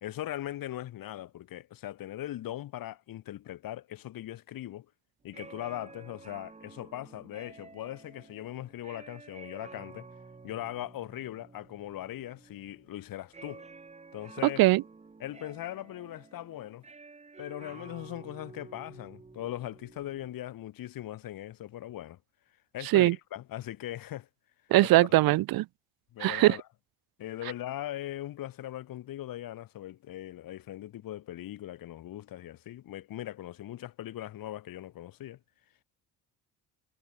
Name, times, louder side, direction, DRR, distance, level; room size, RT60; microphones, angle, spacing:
voice 1, 0.0-4.9 5.2-10.1 10.4-13.7 14.1-14.6 15.2-16.9 17.4-22.2 22.7-24.3 24.8-25.3 26.1-26.6 27.2-35.4, left 13 dB, 60° left, 3.5 m, -40 dB
sound 1, 5.3-20.4, right 4 dB, 15° right, 3.1 m, -51 dB
voice 2, 24.7-25.6 26.2-26.6, right 18 dB, 65° right, 0.8 m, -21 dB
cardioid pair, 160°, 39 cm